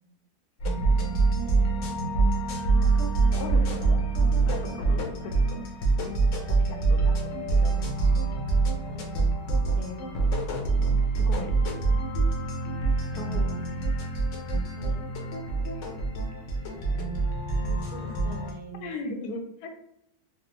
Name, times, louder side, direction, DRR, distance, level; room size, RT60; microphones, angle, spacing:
sound 1, 0.6-18.5, right 3 dB, 65° left, 0.8 m, -25 dB
voice 1, 1.4-1.9 2.8-4.0 4.5-5.1 5.5-5.6 6.5-7.8 9.7-10.1 11.1-11.5 13.1-13.5 14.5-14.6 18.8-19.7, left 2 dB, 85° left, 4 dB, 1.1 m, -39 dB
voice 2, 8.9-9.2 13.2-13.6 14.7-15.1 17.5-19.3, right 1 dB, 75° right, 2 dB, 1.2 m, -44 dB
3.3 x 2.0 x 2.9 m, 0.75 s
omnidirectional pair, 1.6 m